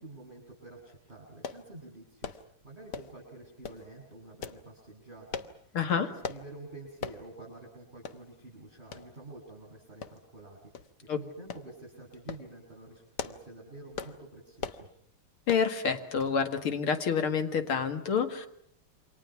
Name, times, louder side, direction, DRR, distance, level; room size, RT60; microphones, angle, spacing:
voice 1, 0.0-2.3 2.6-10.6 11.1-14.9, right 2 dB, 20° right, -4 dB, 7.8 m, -48 dB
sound 1, 1.4-1.6 2.2-2.4 2.9-3.2 3.6-3.8 4.4-4.6 5.3-5.6 6.2-6.4 7.0-7.2 7.6-7.7 8.1-8.2 8.9-9.1 10.0-10.4 10.7-10.9 11.5-11.7 12.1-12.5 13.0-13.5 13.9-14.2 14.6-14.9 15.5-15.7 16.2-16.4 16.7-16.8, left 6 dB, 55° left, 1.6 m, -39 dB
voice 2, 5.7-6.1 11.1-11.2 15.5-18.5, left 6 dB, 70° left, 7 dB, 2.8 m, -28 dB
28.5 x 25.5 x 5.9 m, 0.70 s
omnidirectional pair, 2.4 m